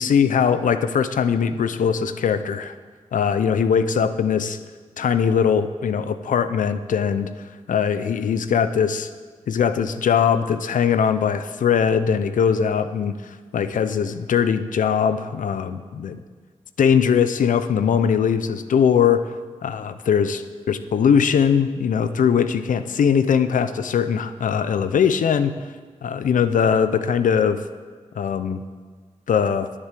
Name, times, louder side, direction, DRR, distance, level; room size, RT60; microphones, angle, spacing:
voice 1, 0.0-2.7 3.1-4.6 5.0-7.3 7.7-9.1 9.5-13.1 13.5-16.2 16.8-19.2 19.6-25.5 26.0-27.6 28.2-28.6 29.3-29.7, left 7 dB, 85° left, 11 dB, 0.6 m, -20 dB
10.5 x 8.4 x 7.4 m, 1.5 s
cardioid pair, 50°, 13 cm